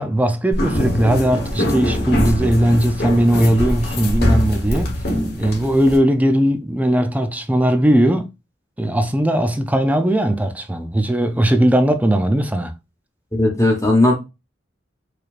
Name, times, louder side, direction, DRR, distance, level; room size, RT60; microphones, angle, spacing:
voice 1, 0.0-4.9 5.4-8.3 8.8-12.7, right 1 dB, 10° right, 0.4 m, -18 dB
sound 1, 0.5-6.0, equal, 55° left, 1.2 m, -22 dB
voice 2, 13.3-14.2, left 1 dB, 15° left, 1.1 m, -16 dB
4.8 x 3.1 x 2.4 m
head